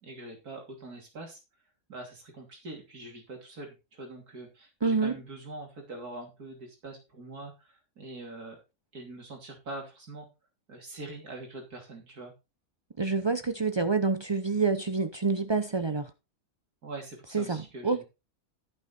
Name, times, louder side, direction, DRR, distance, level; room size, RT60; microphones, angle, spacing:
voice 1, 0.0-1.4 1.9-8.6 8.9-10.3 10.7-12.3 16.8-18.0, right 2 dB, 75° right, 3.5 m, -43 dB
voice 2, 4.8-5.1 13.0-16.1 17.3-18.0, right 4 dB, 45° right, 0.3 m, -27 dB
14.5 x 6.1 x 4.3 m
omnidirectional pair, 1.6 m